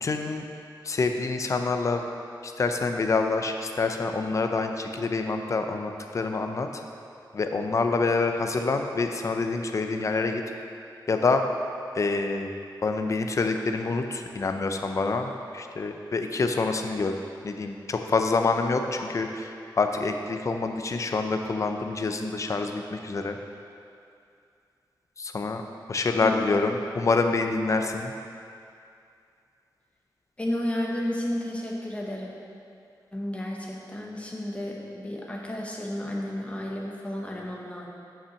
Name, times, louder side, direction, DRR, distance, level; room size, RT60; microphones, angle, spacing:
voice 1, 0.0-0.4 0.8-2.0 2.4-6.7 7.3-10.4 11.1-11.4 11.9-12.5 12.8-17.1 17.4-19.5 19.8-23.4 25.2-25.6 25.9-28.1, left 3 dB, 40° left, 5 dB, 0.6 m, -26 dB
voice 2, 26.2-26.7 30.4-32.3 33.1-37.9, left 1 dB, 15° left, -2 dB, 1.2 m, -32 dB
7.2 x 5.8 x 6.3 m, 2.5 s
wide cardioid pair, 135°, 8 cm